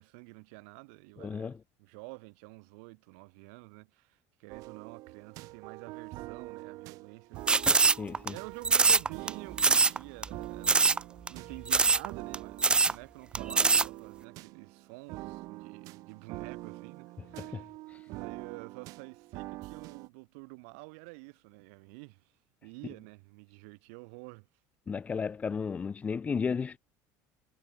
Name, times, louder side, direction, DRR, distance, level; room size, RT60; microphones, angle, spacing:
voice 1, 0.0-7.6 8.3-10.9 11.3-17.7 18.1-22.3 22.6-24.5, right 33 dB, 80° right, 6.0 m, -49 dB
voice 2, 1.2-1.6 8.0-8.4 17.2-17.6 17.9-18.0 24.9-26.8, left 5 dB, 20° left, 2.3 m, -34 dB
sound 1, 4.5-20.1, right 20 dB, 55° right, 1.2 m, -45 dB
sound 2, 7.5-8.3 8.6-9.3 9.6-10.0 10.2-10.3 10.6-11.0 11.3-11.4 11.7-12.1 12.3-12.4 12.6-12.9 13.3-13.9, right 4 dB, 15° right, 0.6 m, -23 dB
cardioid pair, 160°, 7 cm